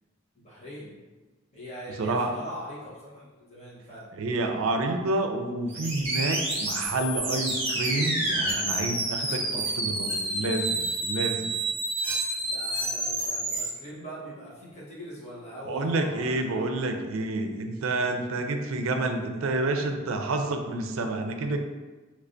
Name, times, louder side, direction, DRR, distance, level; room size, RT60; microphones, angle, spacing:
voice 1, 0.3-1.0 1.5-4.1 9.3-9.7 12.4-16.6, equal, 35° left, -7 dB, 1.1 m, -42 dB
voice 2, 2.0-2.3 4.1-11.5 15.7-21.6, right 2 dB, 80° right, 5 dB, 0.4 m, -29 dB
sound 1, 5.7-13.7, right 2 dB, 30° right, 1.0 m, -29 dB
3.2 x 3.1 x 2.5 m, 1.3 s
head